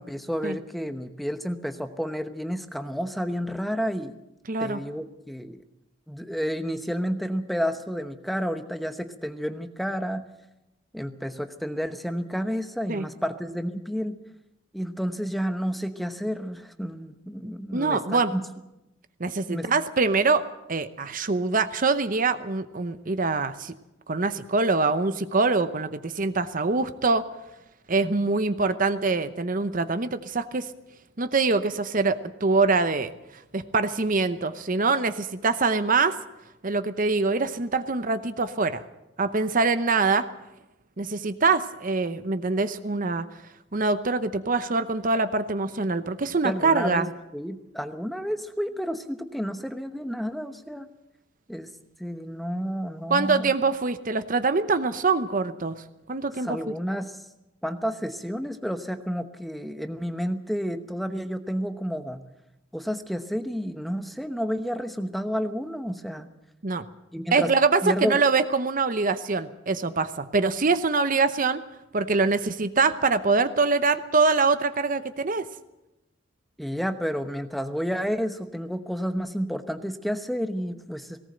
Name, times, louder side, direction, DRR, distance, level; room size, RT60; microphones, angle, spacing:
voice 1, 0.0-4.1 4.6-5.6 6.1-10.3 10.9-14.2 14.7-18.4 19.5-19.7 46.4-50.9 51.5-51.7 52.0-53.5 56.3-57.2 57.6-62.2 62.7-66.3 67.1-67.5 67.8-68.2 76.6-81.2, equal, ahead, 8 dB, 0.9 m, -30 dB
voice 2, 4.5-4.8 12.9-13.0 17.7-18.3 19.2-23.7 24.1-27.3 27.9-30.7 31.2-33.1 33.5-36.2 36.6-38.8 39.2-40.3 41.0-43.2 43.7-47.1 53.1-55.8 56.1-56.7 66.6-66.8 67.3-71.6 71.9-75.4, right 4 dB, 40° right, 11 dB, 0.8 m, -24 dB
18.5 x 18.0 x 7.8 m, 0.94 s
head